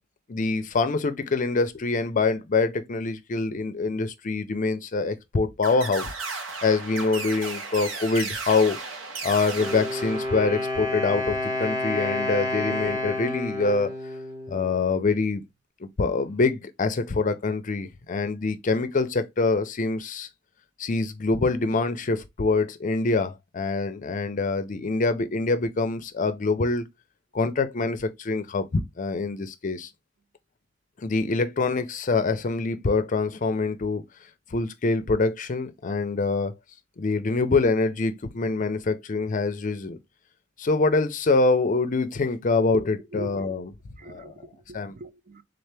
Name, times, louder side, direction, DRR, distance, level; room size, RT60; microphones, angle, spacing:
voice 1, 0.3-6.1 6.6-8.8 9.2-14.0 14.5-15.4 15.8-20.3 20.8-26.9 27.3-29.9 31.0-34.0 34.5-36.5 37.0-40.0 40.6-43.7 44.0-44.3 44.7-45.0, left 3 dB, 40° left, 0.5 m, -25 dB
sound 1, 5.6-10.8, right 4 dB, 80° right, 0.8 m, -35 dB
Wind instrument woodwind instrument, 9.5-15.2, left 2 dB, 20° right, 1.1 m, -30 dB
voice 2, 43.1-43.5 44.0-45.4, right 1 dB, 40° right, 0.5 m, -42 dB
3.9 x 2.8 x 3.3 m
head